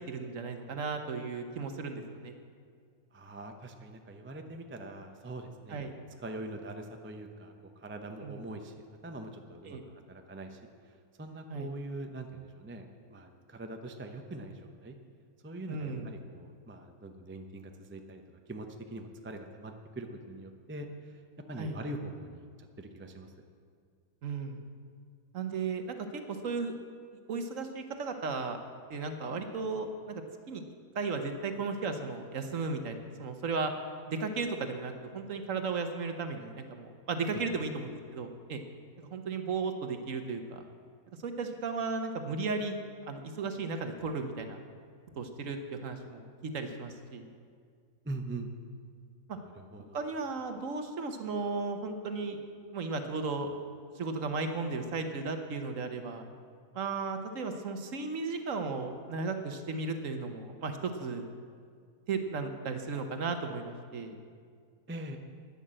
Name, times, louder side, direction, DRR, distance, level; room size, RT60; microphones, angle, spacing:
voice 1, 0.1-2.3 5.7-5.9 8.2-8.4 9.7-9.8 11.5-11.7 15.7-16.1 21.6-21.8 24.2-24.6 25.3-26.7 27.3-28.6 28.9-30.2 30.5-30.6 30.9-33.7 34.1-38.6 39.0-40.6 41.2-42.7 43.1-44.6 45.2-47.3 49.3-49.4 49.9-52.4 52.7-53.5 54.0-56.2 56.7-61.2 62.1-64.2, right 4 dB, 55° right, 6 dB, 1.3 m, -35 dB
voice 2, 3.1-5.8 6.2-9.8 10.1-15.0 15.4-21.2 21.5-23.3 37.3-37.4 48.0-48.5 49.5-50.0 64.9-65.2, right 2 dB, 15° right, 5 dB, 0.4 m, -43 dB
11.0 x 10.0 x 7.5 m, 2.1 s
omnidirectional pair, 1.7 m